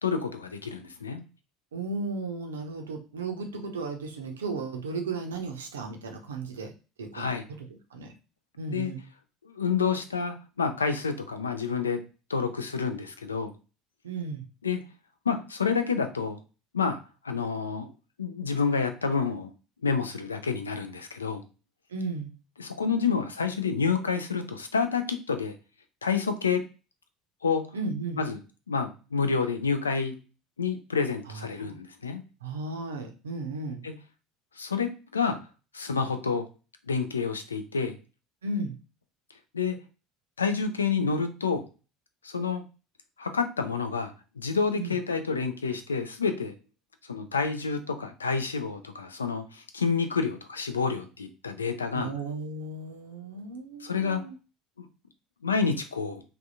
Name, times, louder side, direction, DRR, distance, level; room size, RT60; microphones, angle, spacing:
voice 1, 0.0-1.2 7.1-7.4 8.7-8.9 9.4-12.0 12.3-13.5 14.6-14.8 15.3-16.4 16.7-17.9 18.2-19.5 19.8-21.4 22.6-25.6 26.0-26.6 27.4-27.7 28.2-28.4 28.7-30.2 30.6-32.2 33.8-33.9 34.6-35.4 35.7-36.5 36.9-38.0 39.5-39.8 40.4-41.7 42.2-42.6 43.2-46.5 47.1-52.1 53.8-54.2 54.8-54.9 55.4-56.2, left 5 dB, 80° left, 8 dB, 0.3 m, -28 dB
voice 2, 1.7-6.7 7.0-7.3 7.6-8.1 8.6-9.1 14.0-14.4 21.9-22.3 27.7-28.2 31.3-31.7 32.4-33.8 38.4-38.8 44.8-44.9 51.9-54.3, right 3 dB, 75° right, 4 dB, 0.5 m, -35 dB
3.4 x 2.2 x 2.6 m, 0.33 s
figure-of-eight pair, 65°, 0 cm